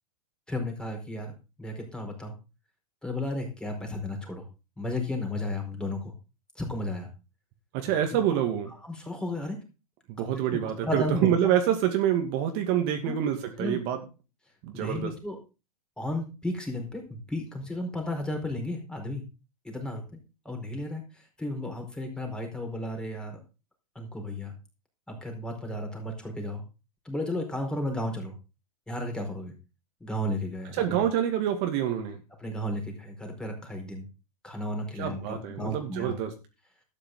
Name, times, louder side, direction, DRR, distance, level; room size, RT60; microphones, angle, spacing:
voice 1, 0.5-1.3 1.6-2.3 3.0-4.5 4.8-6.1 6.5-7.1 7.9-8.0 8.7-9.6 10.5-11.4 13.0-13.2 13.6-13.8 14.7-15.4 16.0-19.2 19.6-20.0 20.4-23.4 23.9-24.5 25.1-26.6 27.0-28.3 28.9-29.5 30.0-31.0 32.4-34.1 34.4-36.1, left 1 dB, 5° left, 3 dB, 4.5 m, -33 dB
voice 2, 7.7-8.7 10.1-14.0 14.6-15.1 30.8-32.2 35.0-36.3, right 10 dB, 45° right, 5 dB, 2.4 m, -26 dB
12.5 x 9.9 x 3.9 m, 0.30 s
hypercardioid pair, 125°, 20 cm